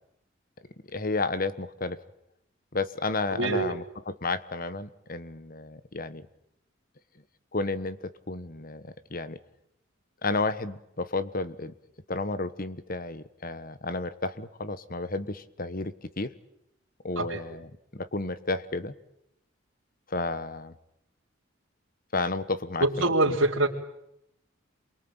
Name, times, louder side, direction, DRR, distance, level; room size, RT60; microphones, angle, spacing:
voice 1, 0.8-2.0 2.7-6.3 7.5-9.4 10.2-11.7 12.1-16.3 17.0-18.9 20.1-20.7 22.1-23.4, left 3 dB, 45° left, 14 dB, 1.4 m, -32 dB
voice 2, 3.3-3.8 17.2-17.4 22.8-23.7, right 2 dB, 85° right, -4 dB, 3.5 m, -24 dB
28.0 x 23.0 x 9.0 m, 0.80 s
head